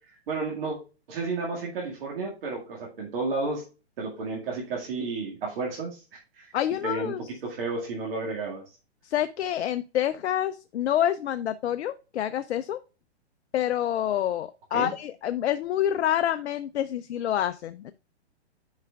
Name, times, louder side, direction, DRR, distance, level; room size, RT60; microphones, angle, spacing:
voice 1, 0.3-0.8 1.1-3.6 4.0-6.5 6.8-7.1 7.4-8.6 14.7-14.9, right 3 dB, 55° right, -2 dB, 2.0 m, -32 dB
voice 2, 6.5-7.3 9.0-12.8 13.5-17.9, left 11 dB, 75° left, 12 dB, 0.5 m, -27 dB
10.5 x 4.8 x 2.3 m, 0.31 s
hypercardioid pair, 135°, 33 cm